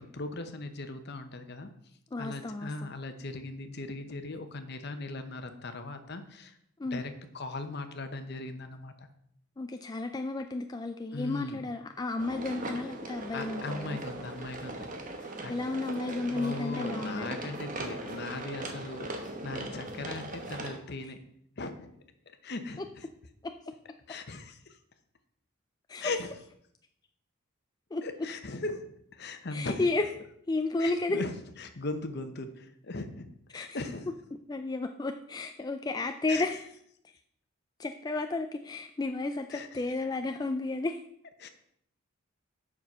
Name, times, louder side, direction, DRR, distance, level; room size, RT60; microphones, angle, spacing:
voice 1, 0.0-1.7 2.2-6.6 6.9-9.1 11.1-11.6 13.3-14.9 15.4-15.5 16.3-21.2 21.6-21.9 22.4-23.1 24.1-24.8 26.0-26.3 28.0-28.9 29.1-29.8 30.8-33.3 33.5-34.1 36.3-36.5 39.5-39.8 41.4-41.5, left 2 dB, 50° left, 8 dB, 0.9 m, -38 dB
voice 2, 2.1-2.9 6.8-7.0 9.6-14.0 15.5-17.4 23.4-23.5 25.9-26.1 27.9-28.0 29.5-30.0 30.5-31.2 33.5-33.8 34.5-36.7 37.8-41.0, left 2 dB, 20° left, 6 dB, 0.3 m, -32 dB
sound 1, 12.2-20.8, right 2 dB, 40° right, 1.2 m, -39 dB
7.4 x 6.1 x 5.5 m, 0.70 s
head